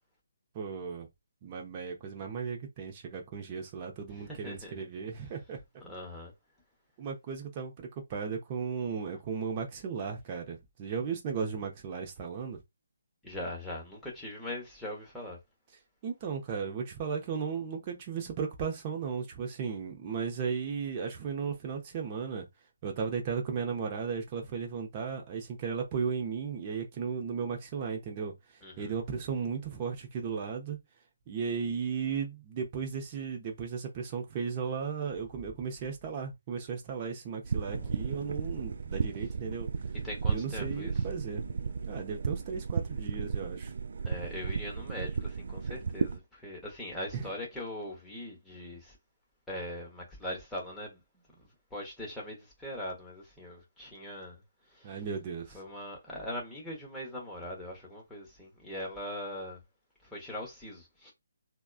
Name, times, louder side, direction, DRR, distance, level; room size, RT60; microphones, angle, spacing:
voice 1, 0.5-1.1 1.4-5.6 7.0-12.6 16.0-22.5 22.8-28.3 28.8-30.8 31.3-39.7 40.3-41.4 41.9-43.7 47.1-47.3 54.8-55.6, right 6 dB, 30° right, 0.8 m, -35 dB
voice 2, 4.1-4.7 5.8-6.3 13.2-15.4 28.6-28.9 37.7-38.1 40.0-40.9 44.0-49.0 49.5-51.0 51.7-54.4 54.7-55.0 55.5-59.6 60.0-61.1, left 1 dB, 5° left, 1.0 m, -41 dB
sound 1, 37.4-46.2, right 5 dB, 55° right, 0.3 m, -34 dB
3.5 x 2.2 x 2.3 m
figure-of-eight pair, 145°, 0 cm